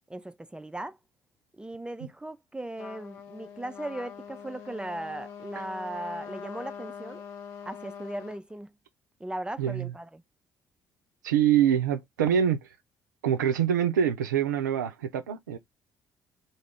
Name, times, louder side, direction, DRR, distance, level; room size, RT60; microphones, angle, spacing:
voice 1, 0.1-1.0 1.5-7.2 7.6-8.7 9.2-10.2, right 1 dB, 10° right, 0.4 m, -37 dB
Trumpet, 2.8-8.4, left 7 dB, 75° left, 0.6 m, -43 dB
voice 2, 9.6-9.9 11.2-12.6 13.2-15.6, right 9 dB, 85° right, 0.4 m, -25 dB
2.4 x 2.1 x 3.4 m
hypercardioid pair, 50°, 10 cm